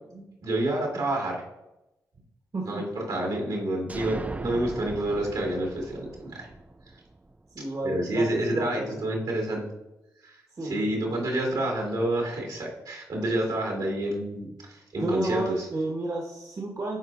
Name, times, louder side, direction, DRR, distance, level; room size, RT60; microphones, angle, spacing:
voice 1, 0.1-1.4 2.6-6.5 7.8-9.6 10.2-10.4 10.6-15.7, right 1 dB, 75° right, -2 dB, 2.4 m, -29 dB
sound 1, 3.9-7.6, right 2 dB, 20° right, 0.4 m, -38 dB
voice 2, 7.5-9.0 10.6-10.8 14.9-17.0, right 2 dB, 50° right, -1 dB, 1.4 m, -31 dB
11.5 x 4.3 x 2.6 m, 0.94 s
supercardioid pair, 45°, 8 cm